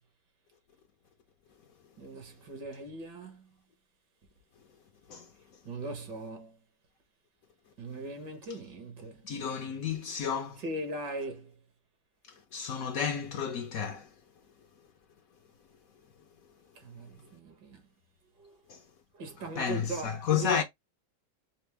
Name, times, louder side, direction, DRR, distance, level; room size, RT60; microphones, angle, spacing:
voice 1, 2.0-3.5 5.7-6.6 7.8-9.3 10.6-11.5 16.8-17.8 18.4-18.6 19.1-20.5, right 2 dB, 75° right, 1.9 m, -40 dB
voice 2, 9.2-10.6 12.5-14.1 18.7-18.8 19.6-20.6, left 7 dB, 65° left, 0.9 m, -31 dB
5.2 x 2.0 x 3.4 m
omnidirectional pair, 1.9 m